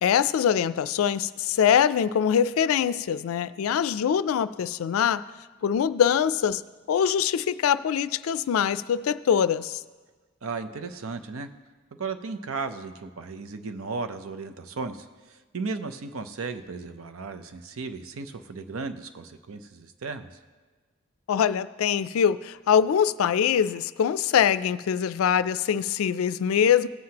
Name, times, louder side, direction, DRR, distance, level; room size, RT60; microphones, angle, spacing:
voice 1, 0.0-5.3 5.6-6.6 6.9-9.8 21.3-26.9, left 8 dB, 90° left, 0.3 m, -23 dB
voice 2, 10.4-11.5 12.0-20.4, right 4 dB, 85° right, 0.6 m, -35 dB
17.5 x 7.7 x 2.9 m
head